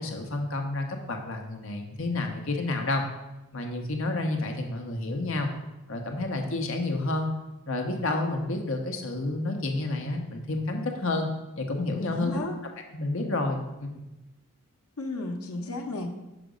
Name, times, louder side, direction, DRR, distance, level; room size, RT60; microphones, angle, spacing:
voice 1, 0.0-3.0 3.5-5.5 5.9-7.3 7.7-11.3 11.6-12.4 12.9-14.0, left 2 dB, 65° left, 3 dB, 0.9 m, -30 dB
voice 2, 12.0-12.6 15.0-16.1, left 2 dB, 85° left, 3 dB, 0.9 m, -33 dB
5.9 x 5.1 x 5.1 m, 1.0 s
head